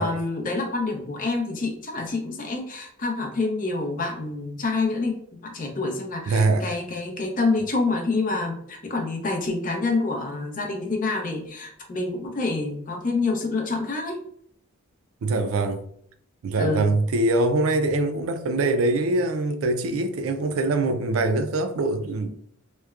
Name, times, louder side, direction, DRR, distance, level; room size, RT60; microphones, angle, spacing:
voice 1, 0.0-14.2 16.6-16.9, left 3 dB, 40° left, 0.6 m, -27 dB
voice 2, 6.3-6.7 15.2-15.8 16.4-22.3, right 2 dB, 90° right, 0.4 m, -23 dB
3.0 x 2.1 x 2.3 m
head